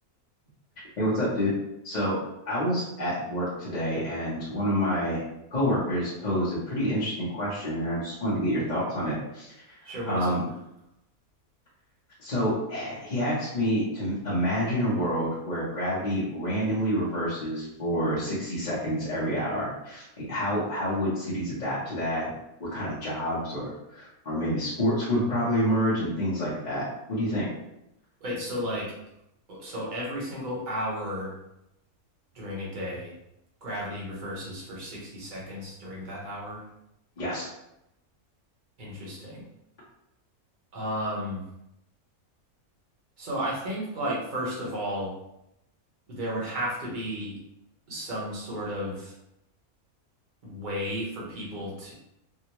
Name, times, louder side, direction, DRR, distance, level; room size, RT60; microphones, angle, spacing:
voice 1, 1.0-1.5 1.8-2.2 2.4-5.2 5.5-10.4 12.2-22.3 22.6-27.5 37.2-37.5, equal, 40° left, -9 dB, 0.8 m, -28 dB
voice 2, 9.8-10.4 28.2-28.9 29.5-31.3 32.3-33.1 33.6-36.6 38.8-39.4 40.7-41.5 43.2-45.1 46.1-47.4 47.9-49.1 50.4-51.9, equal, 40° right, -5 dB, 1.0 m, -33 dB
3.5 x 2.1 x 2.9 m, 0.84 s
omnidirectional pair, 1.5 m